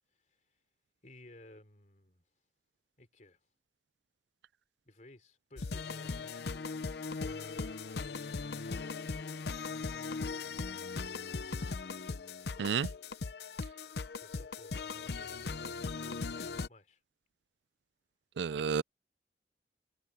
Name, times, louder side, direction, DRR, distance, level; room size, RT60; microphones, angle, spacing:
voice 1, 0.2-0.6 1.0-2.2 3.0-3.4 4.9-6.4 14.2-17.0, left 1 dB, 45° left, 3.5 m, -57 dB
sound 1, 5.6-16.7, left 4 dB, 65° left, 0.7 m, -39 dB
voice 2, 18.4-18.8, right 6 dB, 80° right, 0.4 m, -31 dB
head